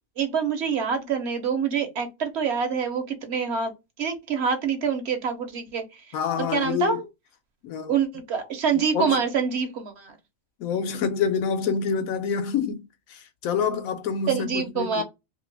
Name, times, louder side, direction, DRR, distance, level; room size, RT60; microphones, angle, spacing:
voice 1, 0.2-6.0 6.4-7.0 7.9-10.2 14.3-15.0, right 6 dB, 55° right, 0.9 m, -26 dB
voice 2, 6.1-7.0 7.6-8.0 8.9-9.2 10.6-12.8 13.1-15.0, left 6 dB, 85° left, 1.1 m, -27 dB
2.9 x 2.8 x 3.2 m
omnidirectional pair, 1.4 m